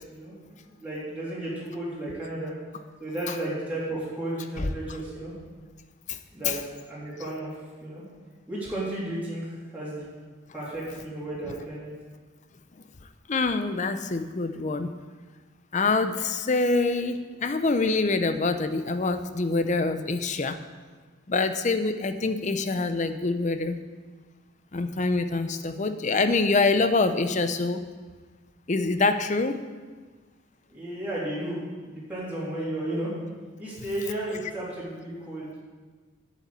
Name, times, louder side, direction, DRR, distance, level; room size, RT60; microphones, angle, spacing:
voice 1, 0.1-2.5 3.0-5.3 6.3-8.0 8.5-10.1 10.5-11.9 30.7-31.6 31.8-33.1 33.6-35.6, right 1 dB, 10° right, -9 dB, 3.2 m, -33 dB
voice 2, 13.3-14.9 15.7-20.6 21.3-23.8 24.7-27.8 28.7-29.6, left 3 dB, 35° left, 9 dB, 0.6 m, -25 dB
8.1 x 7.3 x 8.1 m, 1.4 s
head